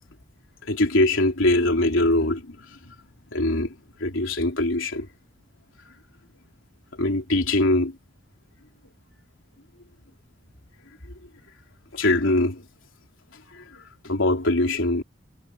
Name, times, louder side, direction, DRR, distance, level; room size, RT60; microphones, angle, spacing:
voice 1, 0.6-2.6 2.8-2.9 3.3-3.7 4.0-5.1 7.0-7.9 11.9-12.6 13.5-15.0, left 1 dB, 85° left, 3.4 m, -22 dB
head